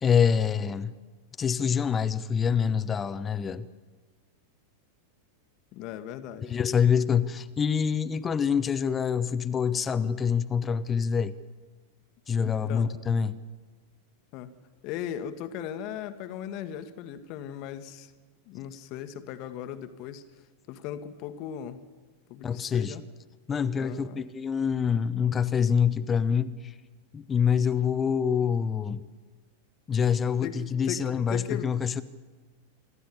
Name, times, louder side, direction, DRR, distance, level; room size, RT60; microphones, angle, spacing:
voice 1, 0.0-0.9 1.4-3.7 6.4-11.3 12.3-13.3 22.4-23.0 23.5-26.7 27.1-29.0 29.9-32.0, left 7 dB, 20° left, 0.9 m, -26 dB
voice 2, 5.7-6.5 12.4-12.9 14.3-14.5 14.8-18.1 18.5-20.2 20.7-21.8 22.3-23.0 23.8-24.2 30.4-31.7, left 10 dB, 40° left, 1.4 m, -38 dB
27.0 x 13.0 x 9.8 m
figure-of-eight pair, 90°, 0 cm